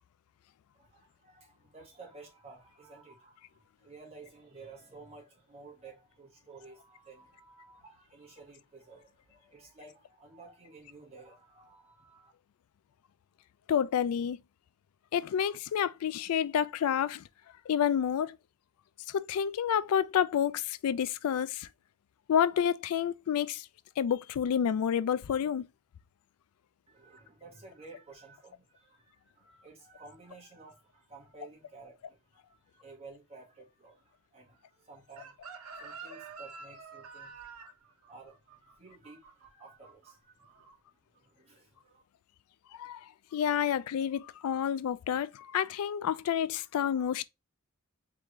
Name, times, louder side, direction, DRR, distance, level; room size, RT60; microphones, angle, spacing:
voice 1, 0.7-12.3 26.9-37.6 37.8-40.6 41.1-42.0, right 3 dB, 30° right, 1.7 m, -53 dB
voice 2, 13.7-14.4 15.1-17.2 17.7-18.4 19.1-21.7 22.3-23.7 24.0-25.7 42.7-43.0 43.3-47.2, left 8 dB, 85° left, 0.3 m, -29 dB
Chicken rooster, 35.2-40.1 40.4-40.7, right 5 dB, 85° right, 0.9 m, -48 dB
3.7 x 3.5 x 3.1 m
head